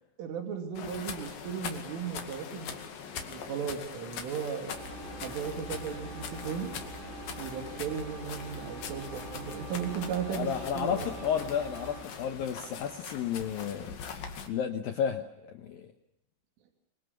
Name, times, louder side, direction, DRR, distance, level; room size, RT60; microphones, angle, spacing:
voice 1, 0.2-2.8 3.3-4.8 5.2-6.7 7.4-10.5 10.8-11.1, right 7 dB, 75° right, 4 dB, 5.4 m, -36 dB
sound 1, 0.7-14.5, left 7 dB, 55° left, 3.4 m, -42 dB
Engine, 4.7-12.0, right 2 dB, 50° right, 5.3 m, -44 dB
voice 2, 10.3-13.9 14.5-15.9, left 8 dB, 85° left, 7 dB, 2.0 m, -32 dB
26.5 x 24.5 x 7.1 m, 0.79 s
omnidirectional pair, 5.8 m